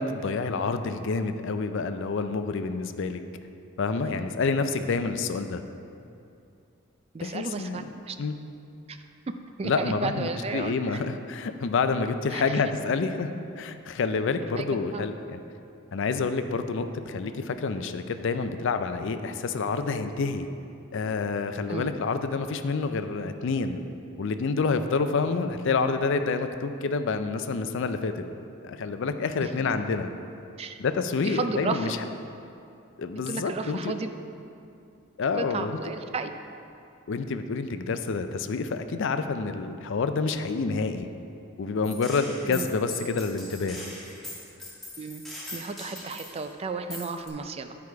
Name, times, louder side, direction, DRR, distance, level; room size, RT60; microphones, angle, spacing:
voice 1, 0.0-3.2 3.8-5.6 7.2-7.8 8.2-8.4 9.6-15.4 15.9-20.5 20.9-23.8 24.2-28.2 28.6-30.1 30.8-32.0 33.0-33.9 35.2-35.8 37.1-41.1 41.6-43.9, left 4 dB, 65° left, 9 dB, 0.4 m, -28 dB
voice 2, 7.1-8.2 8.9-9.0 9.6-11.0 12.3-12.6 14.6-15.0 21.7-21.9 29.4-29.7 30.6-30.8 31.2-31.9 33.3-34.1 35.4-36.3 42.4-42.7 45.0-45.2 45.5-47.8, right 4 dB, 30° right, 8 dB, 0.3 m, -33 dB
Gunshot gunfire, 41.8-46.5 46.9-47.3, left 1 dB, ahead, 1.7 m, -41 dB
10.5 x 4.8 x 4.6 m, 2.6 s
head